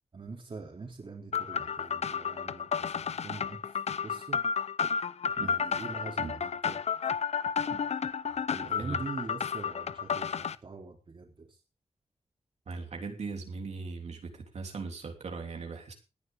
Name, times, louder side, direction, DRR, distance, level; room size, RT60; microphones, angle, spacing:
voice 1, 0.1-4.4 5.4-6.8 8.5-11.6, right 4 dB, 50° right, 0 dB, 3.5 m, -43 dB
sound 1, 1.3-10.5, left 6 dB, 75° left, 0.7 m, -32 dB
voice 2, 12.7-15.9, right 4 dB, 80° right, 2 dB, 3.3 m, -39 dB
18.5 x 11.0 x 3.6 m, 0.30 s
wide cardioid pair, 90°, 11 cm